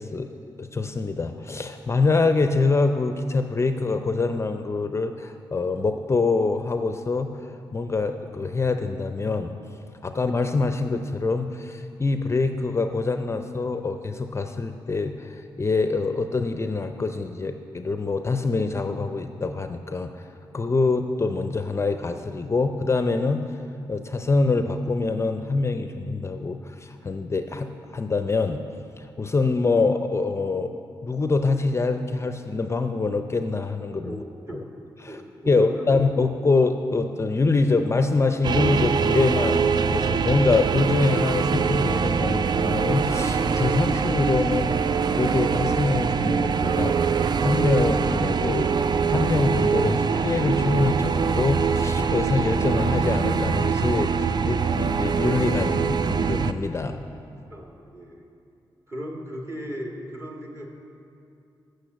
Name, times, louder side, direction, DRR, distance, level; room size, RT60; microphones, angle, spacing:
voice 1, 0.0-9.5 10.0-20.2 20.5-23.4 23.9-28.6 29.0-30.7 31.0-34.2 34.5-34.6 35.0-44.7 45.1-47.0 47.4-48.7 49.1-57.0, left 3 dB, 30° left, 7 dB, 0.5 m, -25 dB
voice 2, 35.1-36.0 57.5-58.3 58.9-60.7, equal, 30° right, 0 dB, 1.8 m, -36 dB
sound 1, 38.4-56.5, right 5 dB, 55° right, 0.4 m, -23 dB
8.3 x 6.4 x 7.9 m, 2.6 s
cardioid pair, 65°, 9 cm